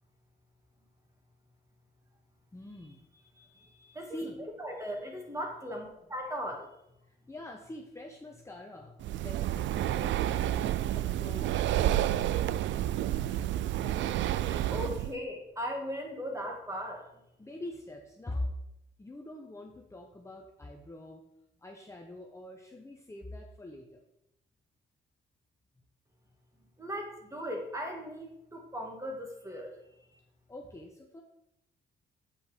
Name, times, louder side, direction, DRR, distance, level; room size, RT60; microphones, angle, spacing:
voice 1, 2.5-3.1 4.0-4.4 7.0-12.3 13.2-13.6 17.4-18.6 19.0-21.2 21.6-24.0 30.5-31.2, left 1 dB, 15° left, 1 dB, 1.0 m, -44 dB
voice 2, 3.4-4.2 4.6-6.7 13.8-14.1 14.3-17.1 26.8-29.7, equal, 15° right, 1 dB, 2.3 m, -38 dB
Breathing, 9.0-15.1, right 12 dB, 70° right, 0.4 m, -30 dB
8.4 x 5.1 x 5.2 m, 0.82 s
cardioid pair, 90°, 20 cm